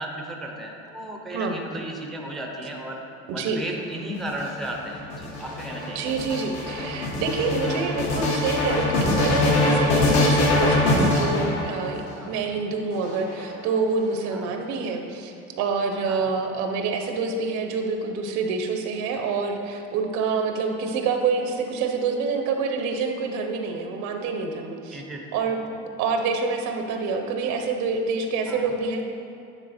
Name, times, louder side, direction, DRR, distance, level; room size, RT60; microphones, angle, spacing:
voice 1, 0.0-3.0 3.3-6.0 12.1-12.3 14.3-14.5 16.1-16.3 24.9-25.2 25.5-25.6 28.5-28.7, right 1 dB, ahead, 0 dB, 0.5 m, -35 dB
voice 2, 3.3-3.6 5.9-25.0 25.3-25.7 26.0-29.0, right 4 dB, 75° right, 4 dB, 0.8 m, -27 dB
sound 1, 4.2-12.1 12.9-13.8, left 2 dB, 75° left, 1.4 m, -23 dB
9.1 x 3.6 x 4.2 m, 2.8 s
cardioid pair, 155°, 29 cm